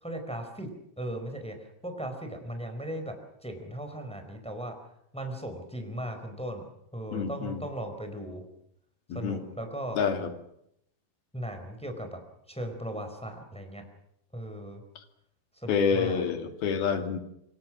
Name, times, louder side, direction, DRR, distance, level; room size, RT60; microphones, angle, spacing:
voice 1, 0.0-0.7 1.0-3.2 3.4-4.7 5.1-6.6 6.9-8.5 9.1-10.0 11.3-12.2 12.5-13.8 14.3-14.8 15.6-16.2, right 1 dB, ahead, 5 dB, 4.0 m, -37 dB
voice 2, 7.1-7.6 9.1-9.5 10.0-10.3 15.7-17.2, left 6 dB, 65° left, 6 dB, 4.0 m, -28 dB
27.0 x 24.5 x 6.2 m, 0.75 s
omnidirectional pair, 5.0 m